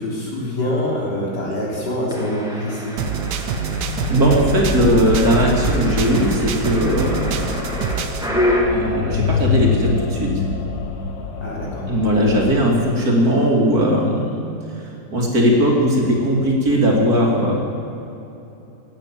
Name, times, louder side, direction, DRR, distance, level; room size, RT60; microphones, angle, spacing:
voice 1, 0.0-3.0 11.4-11.8, left 1 dB, 85° left, -4 dB, 4.0 m, -25 dB
sound 1, 2.1-8.6, left 1 dB, ahead, 1.9 m, -28 dB
sound 2, 3.0-8.3, right 6 dB, 85° right, 1.5 m, -25 dB
sound 3, 3.8-12.6, left 6 dB, 55° left, 1.4 m, -26 dB
voice 2, 4.1-7.8 8.7-10.3 11.9-14.4 15.1-17.5, equal, 60° right, -1 dB, 3.0 m, -18 dB
17.0 x 9.0 x 7.4 m, 3.0 s
omnidirectional pair, 1.8 m